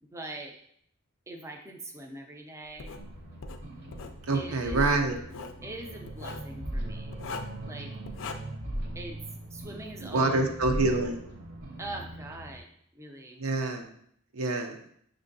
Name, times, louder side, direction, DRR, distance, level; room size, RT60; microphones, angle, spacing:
voice 1, 0.0-0.5 1.3-3.0 4.3-5.0 5.6-7.2 7.7-7.9 9.0-9.2 9.5-10.5 11.8-12.7 12.9-13.4, right 2 dB, 15° right, 2 dB, 0.4 m, -42 dB
Writing, 2.8-3.0 3.4-4.2 5.2-5.6 6.1-6.5 7.1-7.6 8.1-8.3, left 4 dB, 65° left, 0.4 m, -40 dB
sound 1, 3.0-12.6, right 1 dB, 55° right, 0.8 m, -39 dB
voice 2, 4.3-5.1 10.0-11.2 13.4-13.9 14.3-14.8, right 3 dB, 85° right, 4 dB, 0.6 m, -26 dB
6.4 x 2.5 x 2.6 m, 0.67 s
head